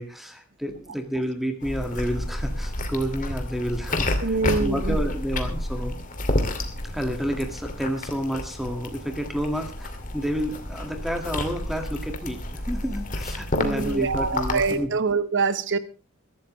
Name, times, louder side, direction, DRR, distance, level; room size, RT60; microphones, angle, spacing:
voice 1, 0.0-6.0 6.8-14.9, equal, ahead, 5 dB, 2.0 m, -30 dB
sound 1, 1.6-14.8, left 1 dB, 40° left, 2.5 m, -30 dB
voice 2, 4.2-5.0 13.5-15.8, right 4 dB, 60° right, 13 dB, 1.2 m, -25 dB
22.5 x 12.5 x 3.3 m, 0.32 s
head